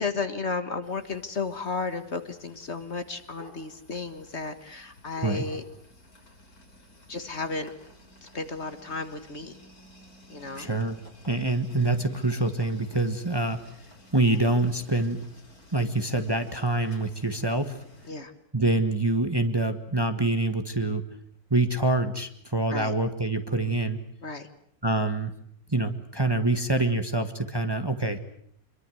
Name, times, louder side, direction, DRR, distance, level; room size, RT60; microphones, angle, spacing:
voice 1, 0.0-5.6 7.1-7.7 8.2-9.5 10.3-10.7 18.1-18.3 22.7-22.9 24.2-24.5, left 4 dB, 45° left, 9 dB, 1.8 m, -33 dB
sound 1, 0.8-18.1, left 1 dB, 75° left, 4.9 m, -53 dB
voice 2, 10.5-11.0 11.3-13.6 14.1-15.2 15.7-17.8 18.5-21.0 21.5-24.0 24.8-25.3 25.7-28.2, right 2 dB, 15° right, 8 dB, 1.5 m, -25 dB
26.0 x 23.0 x 8.0 m, 0.66 s
omnidirectional pair, 1.6 m